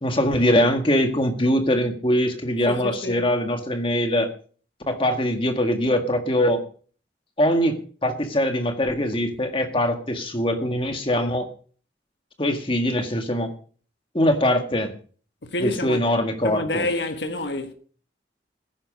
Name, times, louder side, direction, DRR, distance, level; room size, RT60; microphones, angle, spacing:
voice 1, 0.0-4.3 4.9-6.6 7.4-7.7 8.0-11.5 12.4-13.5 14.1-14.9 15.6-16.9, left 1 dB, 30° left, 1.8 m, -22 dB
voice 2, 2.7-3.2 15.4-16.0 16.4-17.7, left 2 dB, 80° left, 1.4 m, -28 dB
15.0 x 10.5 x 5.2 m
head